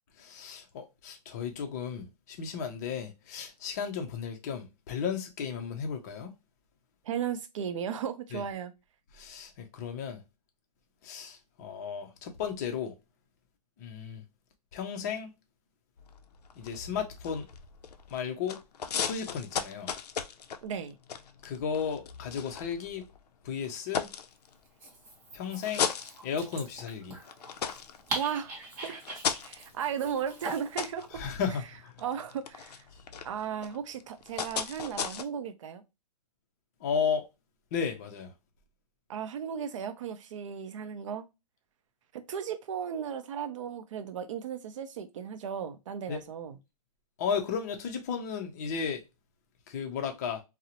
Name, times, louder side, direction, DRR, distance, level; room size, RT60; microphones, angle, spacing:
voice 1, 0.2-6.3 8.3-8.4 9.1-10.2 11.0-12.9 13.8-14.2 14.7-15.3 16.6-17.5 18.1-18.6 19.0-19.9 21.4-23.0 23.4-24.1 25.3-25.9 26.2-27.2 31.1-31.9 32.9-33.0 36.8-37.3 37.7-38.3 46.1-46.2 47.2-49.0 49.7-50.4, left 6 dB, 25° left, 0.4 m, -34 dB
voice 2, 7.0-8.7 20.6-21.0 28.1-28.5 28.8-31.2 32.0-32.9 33.2-35.8 39.1-41.2 42.1-46.6, right 8 dB, 50° right, 0.5 m, -35 dB
sound 1, 16.0-18.2 18.5-23.2 23.6-24.9 25.4-26.8 27.2-35.2, left 7 dB, 80° left, 0.4 m, -37 dB
Dog, 24.6-30.9, right 2 dB, 30° right, 0.9 m, -42 dB
2.5 x 2.0 x 2.8 m
hypercardioid pair, 155°, 20 cm